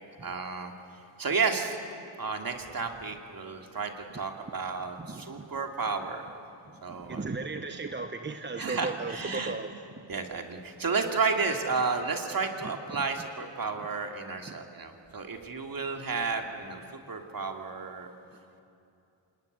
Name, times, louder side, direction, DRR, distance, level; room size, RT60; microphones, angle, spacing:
voice 1, 0.2-0.7 1.2-1.8 2.2-6.3 6.8-7.3 8.6-9.5 10.1-18.1, right 4 dB, 45° right, 4 dB, 2.8 m, -32 dB
voice 2, 5.0-5.5 7.0-9.7, right 3 dB, 20° right, 7 dB, 1.0 m, -35 dB
26.5 x 21.0 x 9.6 m, 2.6 s
cardioid pair, 95°, 49 cm